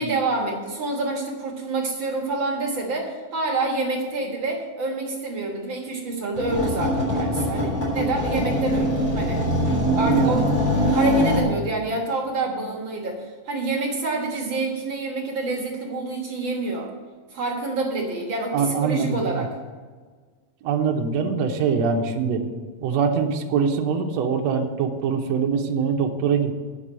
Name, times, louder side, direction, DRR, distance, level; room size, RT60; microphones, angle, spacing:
voice 1, 0.0-9.4 9.9-16.9 17.3-19.5, right 3 dB, 50° right, 0 dB, 1.5 m, -27 dB
sound 1, 6.3-11.4, equal, 40° left, 4.5 m, -22 dB
voice 2, 10.0-10.5 18.5-19.5 20.6-22.5 22.8-26.5, right 6 dB, 70° right, 2 dB, 1.7 m, -23 dB
9.7 x 6.1 x 7.4 m, 1.5 s
omnidirectional pair, 3.8 m